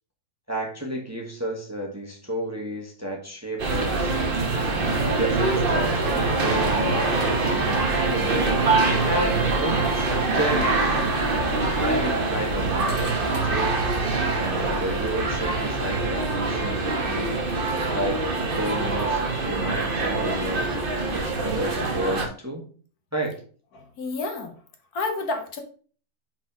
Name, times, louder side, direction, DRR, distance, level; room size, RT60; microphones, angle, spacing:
voice 1, 0.5-4.1 4.7-8.4 9.0-10.7 11.7-13.8 14.3-17.3 17.9-22.6 23.1-23.3, right 1 dB, 10° right, 0 dB, 1.2 m, -31 dB
sound 1, 3.6-22.3, right 3 dB, 40° right, 1.1 m, -24 dB
voice 2, 23.7-24.5 24.9-25.6, left 3 dB, 70° left, 4 dB, 1.5 m, -30 dB
5.1 x 4.2 x 5.1 m, 0.42 s
omnidirectional pair, 1.7 m